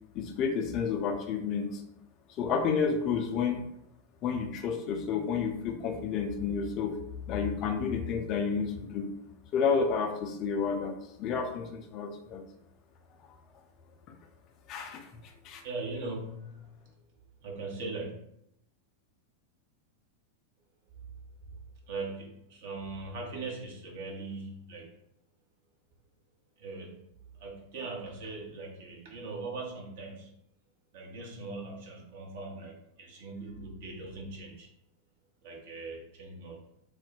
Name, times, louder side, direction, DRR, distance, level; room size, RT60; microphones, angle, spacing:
voice 1, 0.1-1.8 2.4-3.6 4.2-7.0 7.3-9.1 9.5-12.4 14.7-15.1 15.4-15.6, left 6 dB, 35° left, 4 dB, 0.4 m, -30 dB
voice 2, 15.6-16.8 17.4-18.1 21.9-24.9 26.6-27.1 27.4-30.3 30.9-34.7 35.4-36.7, right 3 dB, 50° right, -1 dB, 0.8 m, -40 dB
2.4 x 2.1 x 3.8 m, 0.77 s
figure-of-eight pair, 90°, 0 cm